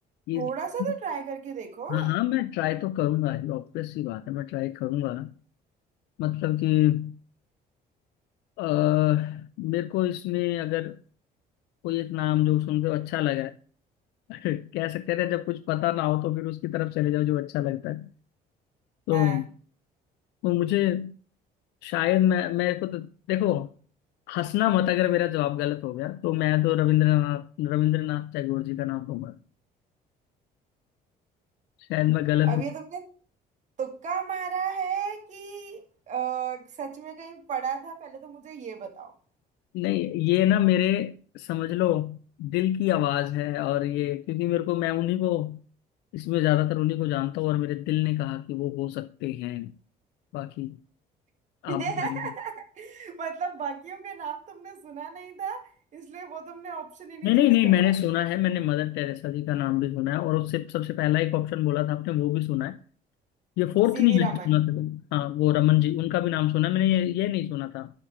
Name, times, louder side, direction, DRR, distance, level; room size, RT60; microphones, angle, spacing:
voice 1, 0.3-2.1 19.1-19.4 32.4-33.0 33.8-39.1 51.7-57.9 63.9-64.5, right 7 dB, 45° right, 1.9 m, -34 dB
voice 2, 1.9-5.3 6.2-7.2 8.6-11.0 11.8-13.5 14.3-18.1 19.1-19.5 20.4-21.1 21.8-23.7 24.3-29.3 31.8-32.6 39.7-45.6 46.1-49.7 50.3-50.8 51.6-52.2 57.2-62.8 63.6-67.9, left 15 dB, 85° left, 0.4 m, -25 dB
11.5 x 4.5 x 4.9 m
cardioid pair, 110°, 17 cm